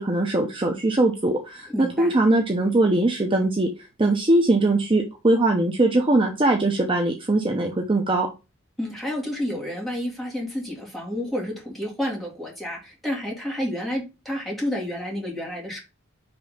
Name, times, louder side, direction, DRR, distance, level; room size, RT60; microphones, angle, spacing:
voice 1, 0.0-3.7 4.0-8.3, right 2 dB, 25° right, 0.7 m, -21 dB
voice 2, 1.7-2.1 8.8-15.8, equal, ahead, 2.1 m, -30 dB
5.2 x 3.4 x 5.5 m
head